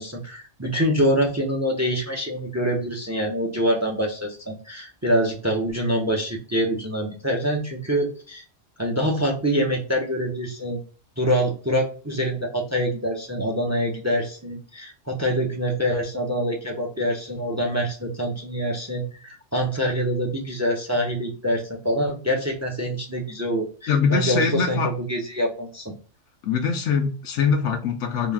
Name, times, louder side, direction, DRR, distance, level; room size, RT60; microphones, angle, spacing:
voice 1, 0.0-8.4 8.8-10.8 11.2-25.9, equal, 20° right, 0.5 m, -25 dB
voice 2, 23.9-24.9 26.4-28.3, left 6 dB, 75° left, 0.9 m, -23 dB
3.9 x 2.4 x 3.4 m
omnidirectional pair, 1.3 m